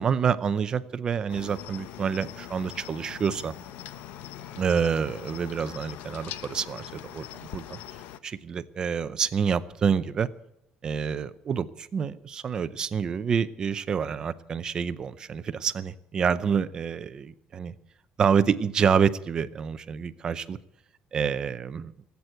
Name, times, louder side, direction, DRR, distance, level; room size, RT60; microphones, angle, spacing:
voice 1, 0.0-3.5 4.6-7.8 8.2-10.3 10.8-17.7 18.2-20.6 21.1-21.9, right 7 dB, 25° right, 13 dB, 0.6 m, -27 dB
Cricket, 1.3-8.2, left 11 dB, 80° left, 0.8 m, -42 dB
18.0 x 8.3 x 7.7 m, 0.81 s
cardioid pair, 175°, 3 cm